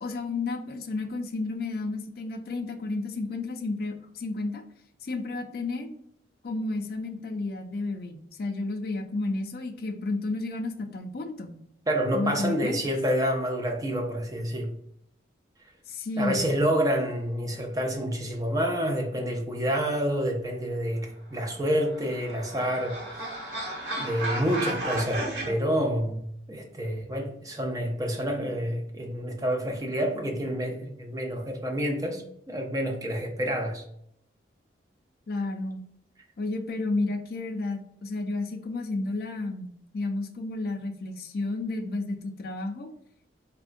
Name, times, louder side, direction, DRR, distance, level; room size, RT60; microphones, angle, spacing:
voice 1, 0.0-4.6 5.0-5.9 6.4-11.6 12.1-12.8 15.9-16.5 35.3-35.8 36.4-42.9, left 2 dB, 50° left, 0.4 m, -32 dB
voice 2, 11.9-14.7 16.2-23.0 24.0-33.8, equal, 20° right, 0.4 m, -28 dB
sound 1, 21.6-25.5, right 1 dB, 70° right, 1.2 m, -34 dB
3.5 x 2.2 x 2.5 m
head